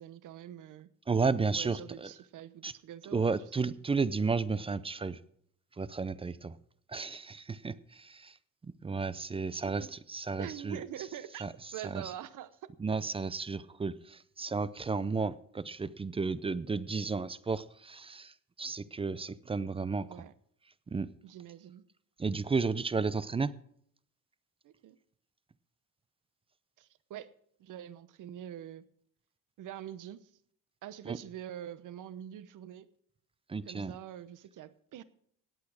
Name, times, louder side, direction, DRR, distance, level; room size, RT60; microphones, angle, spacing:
voice 1, 0.0-0.9 1.5-3.7 9.6-9.9 10.4-11.5 11.7-12.7 20.1-20.3 21.2-21.8 24.6-25.0 26.8-27.3 27.6-28.8 29.6-30.3 30.8-32.9 33.7-35.0, right 11 dB, 65° right, 15 dB, 1.0 m, -45 dB
voice 2, 1.1-2.1 2.6-2.7 3.1-5.2 5.8-6.6 6.9-8.4 8.6-10.8 11.4-11.5 11.8-12.0 12.8-20.2 20.9-21.1 22.2-23.5 31.1-31.2 33.5-33.9, right 4 dB, 15° right, 17 dB, 0.5 m, -33 dB
18.0 x 8.5 x 4.9 m, 0.66 s
cardioid pair, 135°, 34 cm